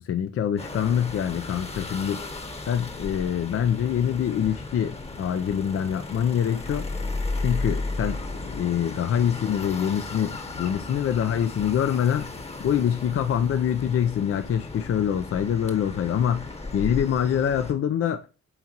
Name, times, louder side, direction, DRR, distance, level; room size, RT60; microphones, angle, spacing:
voice 1, 0.0-2.2 2.7-6.9 7.4-8.2 8.4-12.3 12.6-16.5 16.7-18.2, left 9 dB, 50° left, 0.6 m, -25 dB
sound 1, 0.6-17.7, left 2 dB, 20° left, 1.1 m, -35 dB
7.9 x 4.2 x 2.9 m
cardioid pair, 90°, 30 cm